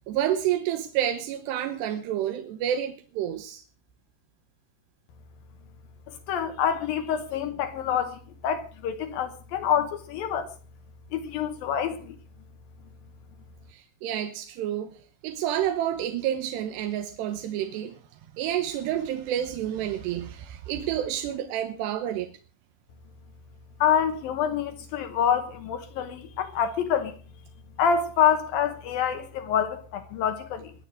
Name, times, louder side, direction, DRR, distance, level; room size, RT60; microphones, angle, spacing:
voice 1, 0.1-3.6 13.7-14.9 15.2-18.0 18.4-22.3, right 11 dB, 90° right, 3.2 m, -29 dB
voice 2, 6.1-10.5 11.1-12.2 23.8-27.1 27.8-30.7, left 8 dB, 70° left, 2.5 m, -26 dB
23.0 x 8.3 x 4.9 m
omnidirectional pair, 4.7 m